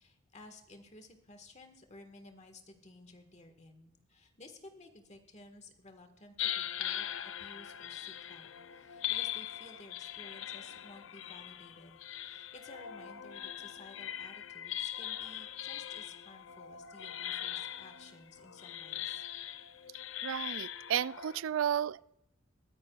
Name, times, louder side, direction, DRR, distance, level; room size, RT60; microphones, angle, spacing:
voice 1, 0.0-19.2, left 2 dB, 35° left, 1.6 m, -55 dB
sound 1, 6.4-21.4, left 11 dB, 70° left, 0.5 m, -41 dB
voice 2, 20.2-22.0, right 9 dB, 70° right, 0.3 m, -32 dB
22.5 x 9.8 x 2.4 m
head